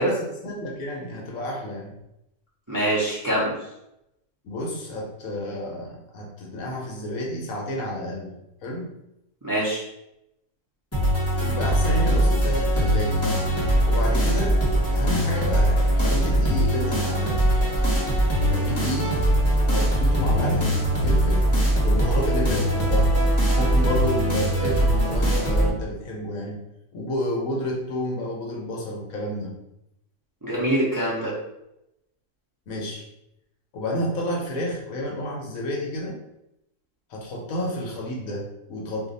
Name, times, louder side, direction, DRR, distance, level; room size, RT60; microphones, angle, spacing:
voice 1, 0.0-1.9 4.4-8.3 8.6-8.9 11.4-13.2 13.8-14.6 14.9-17.5 18.5-19.2 19.7-21.4 21.8-23.2 23.5-26.6 26.9-29.5 32.7-33.0 33.7-36.2 37.1-39.1, equal, 70° left, 0 dB, 1.1 m, -30 dB
voice 2, 2.7-3.5 9.4-9.8 30.4-31.3, right 1 dB, 20° right, -7 dB, 0.5 m, -24 dB
sound 1, 10.9-25.7, right 1 dB, 15° left, 0.7 m, -21 dB
2.5 x 2.5 x 3.9 m, 0.86 s
omnidirectional pair, 1.5 m